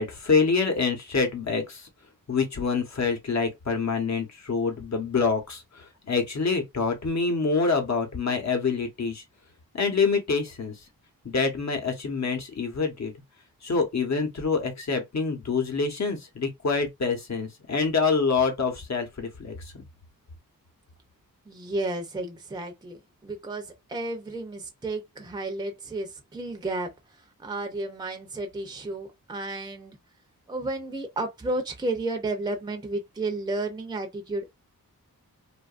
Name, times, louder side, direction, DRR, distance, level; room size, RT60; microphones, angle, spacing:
voice 1, 0.0-1.9 2.3-9.2 9.7-10.7 11.2-13.1 13.6-19.5, left 4 dB, 50° left, 1.0 m, -26 dB
voice 2, 21.5-26.9 27.4-30.0 30.5-34.5, right 2 dB, 10° right, 0.6 m, -32 dB
2.8 x 2.5 x 2.4 m
wide cardioid pair, 90°, 35 cm